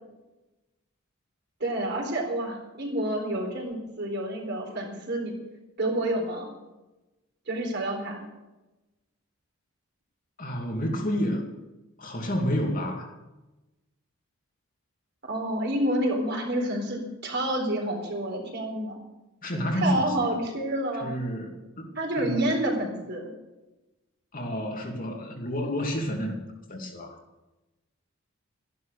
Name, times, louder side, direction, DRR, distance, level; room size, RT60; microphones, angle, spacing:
voice 1, 1.6-5.3 5.8-6.5 7.5-8.3 15.2-19.0 19.8-21.1 22.0-23.3, right 1 dB, 50° right, 0 dB, 4.0 m, -28 dB
voice 2, 10.4-11.4 12.0-13.1 19.4-20.3 21.0-22.6 24.3-26.4 26.7-27.1, equal, 40° left, 1 dB, 2.4 m, -30 dB
14.0 x 11.0 x 6.7 m, 1.1 s
head